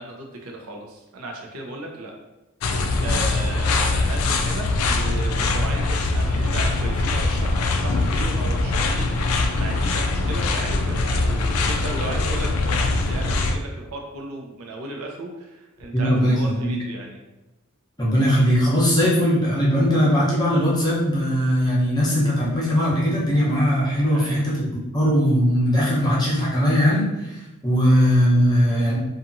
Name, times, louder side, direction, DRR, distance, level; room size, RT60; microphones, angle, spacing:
voice 1, 0.0-2.1 3.0-17.2 24.1-24.5, right 2 dB, 75° right, 1 dB, 0.6 m, -35 dB
sound 1, 2.6-13.6, left 3 dB, 70° left, 0.3 m, -22 dB
voice 2, 15.9-16.8 18.0-24.7 24.9-27.4 27.6-29.0, equal, 20° left, -6 dB, 0.7 m, -19 dB
2.8 x 2.4 x 2.5 m, 1.0 s
head